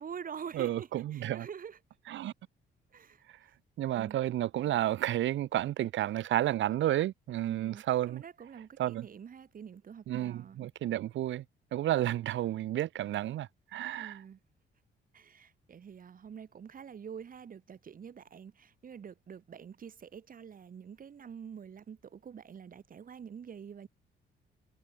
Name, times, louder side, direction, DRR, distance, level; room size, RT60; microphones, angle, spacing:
voice 1, 0.0-1.8 2.9-3.2 3.9-4.2 7.5-10.6 14.0-14.4 15.1-23.9, right 7 dB, 45° right, 1.4 m, -46 dB
voice 2, 0.5-1.5 2.1-2.3 3.8-8.2 8.8-9.1 10.1-11.4 11.7-14.2, right 13 dB, 70° right, 0.9 m, -31 dB
cardioid pair, 90°, 20 cm